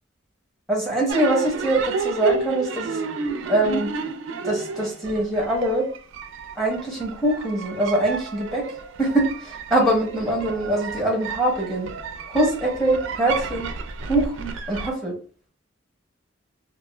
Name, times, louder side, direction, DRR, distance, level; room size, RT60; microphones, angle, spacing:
voice 1, 0.7-3.0 3.5-3.9 4.4-5.9 6.6-8.6 9.0-11.9 12.3-13.7 14.1-15.1, right 1 dB, ahead, -1 dB, 0.7 m, -23 dB
sound 1, 1.1-14.9, right 4 dB, 70° right, 0.4 m, -31 dB
2.4 x 2.3 x 3.0 m, 0.39 s
head